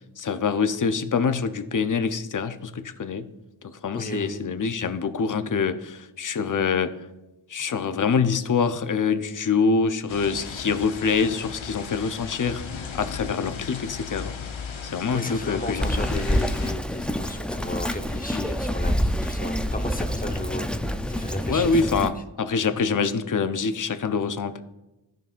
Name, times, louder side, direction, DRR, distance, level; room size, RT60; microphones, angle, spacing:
voice 1, 0.2-3.3 3.7-6.9 7.5-14.3 14.8-16.2 18.3-18.4 21.5-24.6, left 5 dB, 40° left, 10 dB, 0.6 m, -25 dB
voice 2, 3.9-4.4 15.1-22.1, left 1 dB, 20° left, 5 dB, 0.9 m, -34 dB
sound 1, 10.1-16.7, left 6 dB, 80° left, 0.8 m, -37 dB
Bird vocalization bird call bird song, 15.8-22.1, equal, ahead, 0.4 m, -27 dB
14.0 x 5.4 x 2.5 m, 1.0 s
cardioid pair, 40°, 47 cm